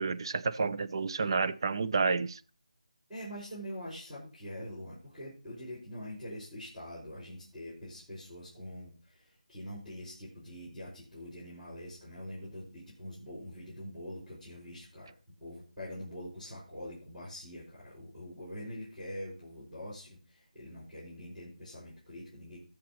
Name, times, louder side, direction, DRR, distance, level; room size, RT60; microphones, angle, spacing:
voice 1, 0.0-2.4, right 4 dB, 35° right, 0.4 m, -30 dB
voice 2, 3.1-15.1 15.4-22.6, equal, 5° right, 4.6 m, -44 dB
19.0 x 7.2 x 3.0 m
figure-of-eight pair, 170°, 5 cm